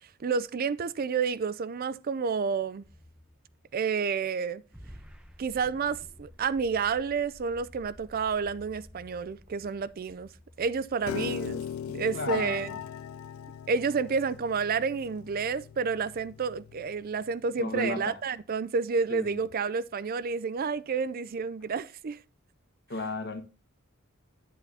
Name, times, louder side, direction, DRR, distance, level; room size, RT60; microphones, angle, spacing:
voice 1, 0.2-2.8 3.7-4.6 5.4-10.3 10.6-12.7 13.7-22.2, right 5 dB, 45° right, 0.4 m, -30 dB
sound 1, 2.8-3.9 4.7-11.6, equal, 5° right, 0.8 m, -52 dB
Piano, 11.1-17.3, left 8 dB, 75° left, 0.3 m, -39 dB
voice 2, 12.1-12.8 17.6-18.2 19.1-19.4 22.9-23.4, left 2 dB, 55° left, 1.5 m, -34 dB
9.8 x 8.2 x 2.7 m
head